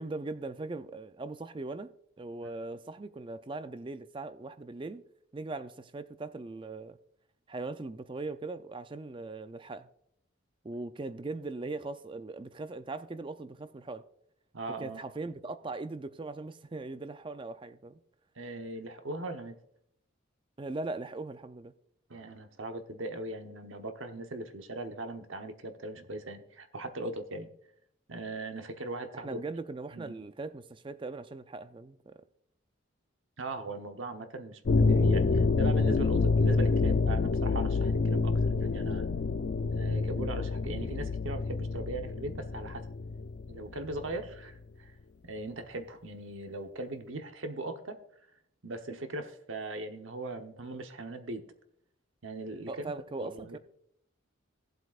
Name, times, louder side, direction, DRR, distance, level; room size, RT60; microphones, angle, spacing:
voice 1, 0.0-5.0 5.3-7.0 7.5-9.9 10.6-14.0 14.8-18.0 20.6-21.7 29.1-32.2 52.7-53.6, right 3 dB, 25° right, 0.4 m, -40 dB
voice 2, 14.5-15.0 18.4-19.5 22.1-27.5 28.1-29.4 29.9-30.2 33.4-39.1 39.7-42.9 43.5-44.9 45.2-48.0 48.6-51.4 52.2-52.9 53.2-53.6, right 2 dB, 75° right, 1.0 m, -39 dB
sound 1, 34.7-44.1, left 4 dB, 55° left, 0.4 m, -27 dB
17.0 x 7.9 x 2.4 m
head